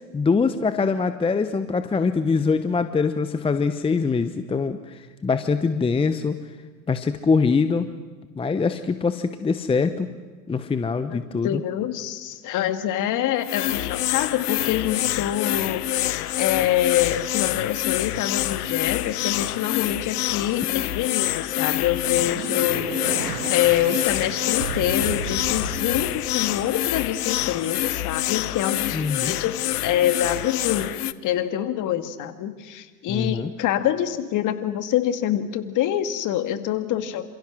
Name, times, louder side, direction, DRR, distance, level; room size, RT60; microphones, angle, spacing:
voice 1, 0.1-6.4 6.9-7.9 8.4-10.1 10.5-11.6 28.9-29.3 33.1-33.5, left 4 dB, 10° left, 11 dB, 0.9 m, -23 dB
voice 2, 11.1-23.2 23.5-29.6 29.8-30.9 31.2-37.3, left 11 dB, 40° left, 9 dB, 2.2 m, -26 dB
sound 1, 13.4-31.1, left 14 dB, 65° left, 1.2 m, -26 dB
sound 2, 21.7-27.1, right 7 dB, 80° right, 1.7 m, -34 dB
29.0 x 27.0 x 6.2 m, 1.4 s
hypercardioid pair, 95°, 49 cm